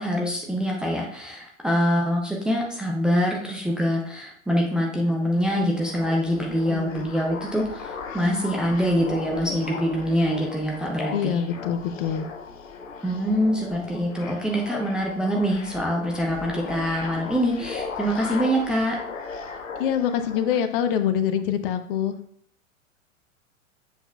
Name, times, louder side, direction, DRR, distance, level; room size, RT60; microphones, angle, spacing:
voice 1, 0.0-11.4 13.0-19.0, equal, ahead, -1 dB, 0.4 m, -24 dB
sound 1, 5.3-20.6, left 5 dB, 75° left, 0.8 m, -37 dB
voice 2, 6.5-7.1 11.1-12.3 19.8-22.2, left 9 dB, 45° left, 9 dB, 0.7 m, -25 dB
7.3 x 5.9 x 2.3 m, 0.67 s
figure-of-eight pair, 100°, 39 cm